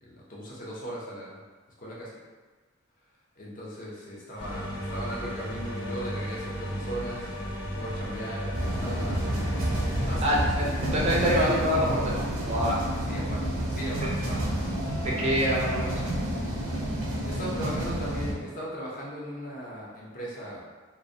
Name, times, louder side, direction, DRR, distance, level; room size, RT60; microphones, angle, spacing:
voice 1, 0.0-1.4 1.8-2.1 3.4-7.3 7.8-9.2 10.0-10.3 13.0-14.8 17.3-20.6, equal, 40° left, -5 dB, 0.5 m, -38 dB
sound 1, 4.4-10.2, equal, 85° left, 0.8 m, -34 dB
sound 2, 8.5-18.3, right 1 dB, 85° right, 0.5 m, -29 dB
voice 2, 10.2-12.8 15.0-16.0, equal, 30° right, -4 dB, 0.4 m, -26 dB
2.4 x 2.0 x 2.6 m, 1.4 s
head